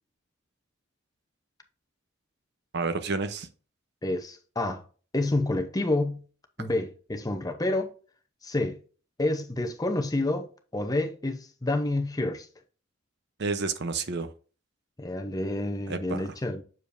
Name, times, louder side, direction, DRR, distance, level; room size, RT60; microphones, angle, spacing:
voice 1, 2.7-3.5 13.4-14.3 15.9-16.2, right 4 dB, 55° right, 0.8 m, -30 dB
voice 2, 4.0-4.8 5.1-6.2 6.6-7.9 8.4-8.8 9.2-10.5 10.7-12.5 15.0-16.6, left 2 dB, 20° left, 0.7 m, -28 dB
7.3 x 6.7 x 2.6 m
head